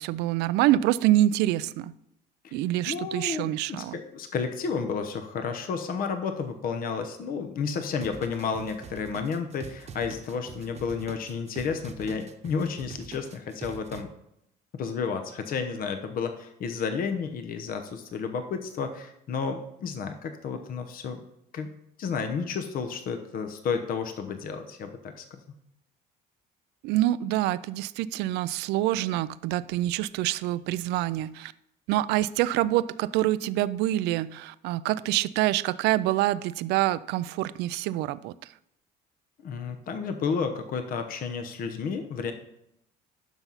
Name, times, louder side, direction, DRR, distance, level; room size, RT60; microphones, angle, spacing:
voice 1, 0.0-1.9 2.5-4.0 26.8-31.5 31.9-38.5, right 14 dB, 90° right, 16 dB, 0.4 m, -26 dB
voice 2, 2.8-14.1 14.8-21.2 21.5-21.7 22.0-25.4 39.4-42.3, left 5 dB, 60° left, 7 dB, 0.9 m, -31 dB
sound 1, 8.0-14.0, right 5 dB, 40° right, 1.0 m, -44 dB
12.0 x 5.9 x 4.0 m, 0.79 s
cardioid pair, 110°, 17 cm